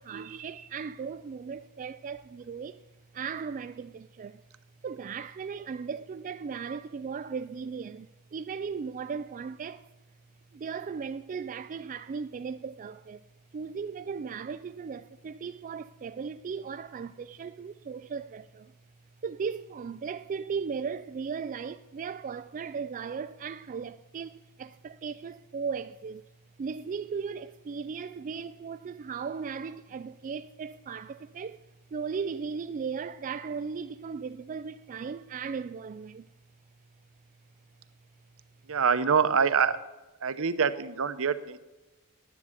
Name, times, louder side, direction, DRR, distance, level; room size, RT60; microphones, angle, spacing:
voice 1, 0.0-2.8 3.1-4.4 4.8-9.9 10.5-13.2 13.5-18.7 19.2-26.2 26.6-36.3, right 5 dB, 35° right, 0.3 m, -37 dB
voice 2, 38.7-39.8 40.2-41.6, right 6 dB, 65° right, 0.8 m, -25 dB
10.0 x 9.6 x 7.3 m
head